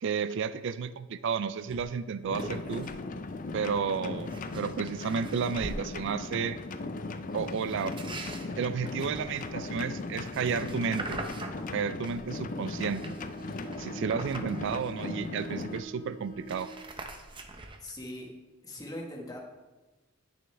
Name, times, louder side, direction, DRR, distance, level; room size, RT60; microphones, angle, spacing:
voice 1, 0.0-2.9 3.5-6.6 7.3-7.9 8.6-11.2 11.7-13.2 13.8-16.7, right 6 dB, 60° right, 14 dB, 0.4 m, -32 dB
sound 1, 1.7-1.8 2.2-3.0 3.3-3.5 4.1-5.8 7.5-12.3 12.6-15.3 15.7-15.8 16.0-18.0, right 2 dB, 25° right, 0.6 m, -43 dB
sound 2, 2.3-15.8, left 3 dB, 40° left, 0.4 m, -38 dB
Bowed string instrument, 12.0-16.9, right 4 dB, 65° left, 2.2 m, -48 dB
voice 2, 17.8-18.3 18.6-19.4, left 1 dB, 15° left, -1 dB, 1.4 m, -40 dB
10.5 x 6.4 x 3.4 m, 1.1 s
head